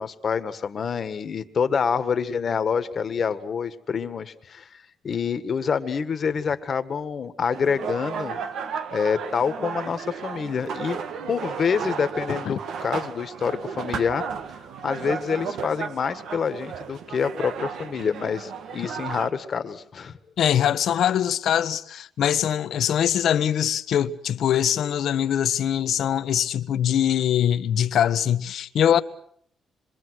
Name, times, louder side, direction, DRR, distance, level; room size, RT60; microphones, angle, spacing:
voice 1, 0.0-4.7 5.0-8.4 8.9-11.0 11.3-14.2 14.8-20.2, left 6 dB, 50° left, 1.8 m, -27 dB
sound 1, 7.5-19.3, right 6 dB, 75° right, 1.7 m, -34 dB
voice 2, 20.4-29.0, left 10 dB, 70° left, 1.2 m, -22 dB
26.5 x 23.5 x 6.4 m
cardioid pair, 90°, 0 cm